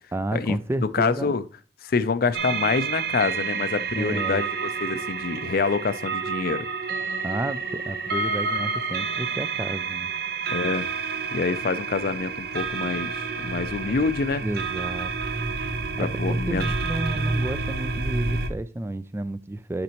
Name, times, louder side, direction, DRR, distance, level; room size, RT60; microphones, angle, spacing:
voice 1, 0.1-1.3 4.0-4.4 7.2-10.1 13.8-14.0 14.4-15.1 16.0-16.1 16.5-19.8, right 1 dB, 15° right, 0.3 m, -31 dB
voice 2, 0.9-1.4 1.8-6.6 10.5-10.9 11.3-14.4 16.0-16.7, left 4 dB, 55° left, 0.5 m, -26 dB
sound 1, 2.3-18.5, right 4 dB, 60° right, 0.8 m, -29 dB
8.4 x 5.3 x 3.0 m
head